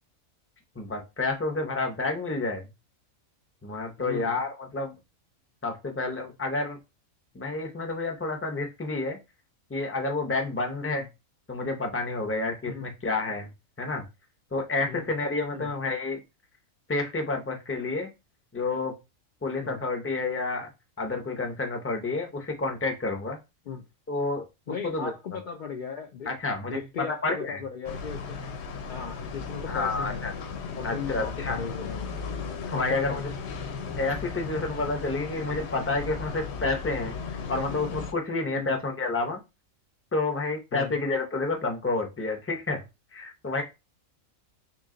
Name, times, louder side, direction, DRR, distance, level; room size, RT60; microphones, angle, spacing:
voice 1, 0.8-2.6 3.6-4.9 5.6-6.8 7.3-9.2 9.7-11.1 11.5-13.5 13.8-14.0 14.5-16.2 16.9-18.1 18.5-18.9 19.4-20.7 21.0-23.4 24.1-24.5 24.8-25.1 26.3-27.6 29.7-30.3 30.8-31.6 32.7-33.3 34.0-37.1 37.5-39.4 40.1-42.8 43.1-43.6, left 3 dB, 15° left, 0.5 m, -29 dB
voice 2, 4.0-4.4 10.8-11.1 12.7-12.9 14.9-15.0 15.5-15.7 19.6-19.8 23.7-23.8 24.7-26.3 26.7-28.4 28.9-30.2 30.8-32.1 32.7-33.3 38.5-38.7 40.7-41.0, left 6 dB, 85° left, 0.4 m, -37 dB
sound 1, 27.8-38.1, left 5 dB, 60° left, 0.8 m, -36 dB
3.1 x 3.0 x 3.7 m
omnidirectional pair, 1.4 m